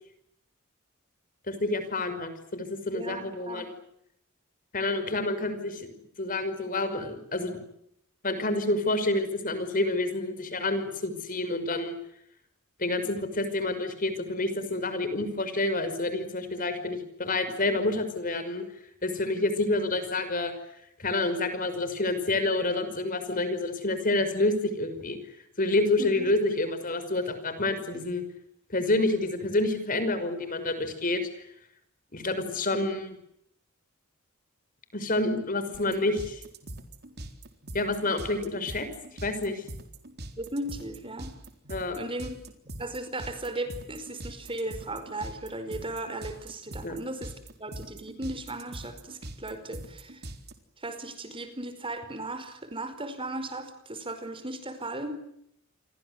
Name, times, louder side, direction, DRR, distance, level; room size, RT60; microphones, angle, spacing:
voice 1, 1.5-3.7 4.7-5.9 6.2-7.6 8.2-12.0 12.8-18.7 19.0-20.5 21.0-25.2 25.6-28.2 28.7-31.3 32.1-33.2 34.9-36.4 37.7-38.9 39.2-39.6 41.7-42.0 46.8-47.0, left 2 dB, 40° left, 11 dB, 5.5 m, -28 dB
voice 2, 2.9-3.6 17.7-17.8 26.0-26.3 40.4-41.4 42.0-42.4 42.8-47.3 47.6-50.2 50.8-55.1, right 2 dB, 25° right, 10 dB, 4.9 m, -36 dB
sound 1, 35.7-50.5, right 1 dB, 50° right, 3.9 m, -42 dB
29.5 x 24.5 x 8.1 m, 0.74 s
head